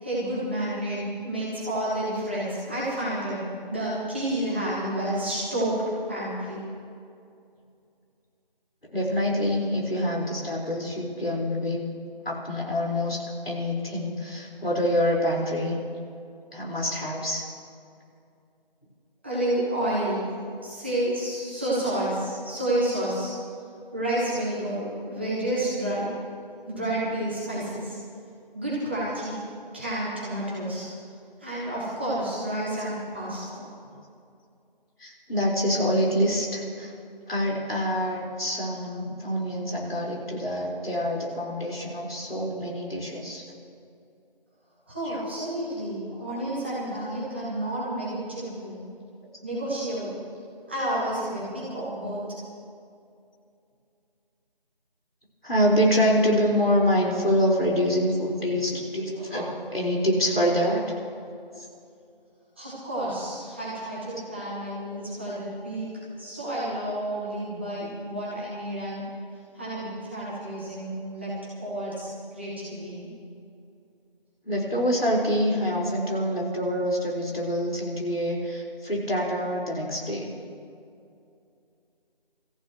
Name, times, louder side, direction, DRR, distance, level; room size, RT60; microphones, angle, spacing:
voice 1, 0.0-5.7 6.1-6.6 19.2-20.2 20.6-23.3 23.9-26.1 26.7-28.0 28.5-29.4 29.7-30.9 31.4-33.7 44.9-48.8 49.4-50.2 50.7-52.3 62.6-65.9 66.2-69.1 69.5-71.3 71.6-73.1, right 1 dB, 10° right, -9 dB, 1.6 m, -30 dB
voice 2, 8.9-11.8 12.2-13.2 13.4-15.8 16.5-17.4 35.0-36.9 37.3-43.5 45.0-45.2 55.4-60.8 61.6-61.7 74.4-80.3, equal, 85° left, -3 dB, 4.6 m, -26 dB
25.0 x 14.5 x 3.1 m, 2.5 s
figure-of-eight pair, 165°, 29 cm